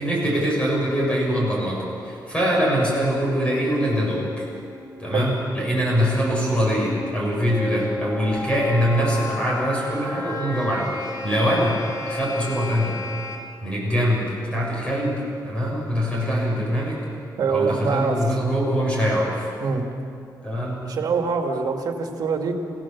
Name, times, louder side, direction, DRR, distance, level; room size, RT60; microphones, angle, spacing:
voice 1, 0.0-4.5 5.0-13.0 13.6-17.0 17.5-19.5 20.4-20.9, equal, 15° left, -4 dB, 7.2 m, -23 dB
sound 1, 3.7-13.4, left 3 dB, 50° left, 2.9 m, -34 dB
voice 2, 17.4-18.4 19.6-19.8 20.8-22.5, right 5 dB, 60° right, 3 dB, 2.4 m, -24 dB
28.5 x 17.0 x 7.4 m, 2.6 s
wide cardioid pair, 165°, 8 cm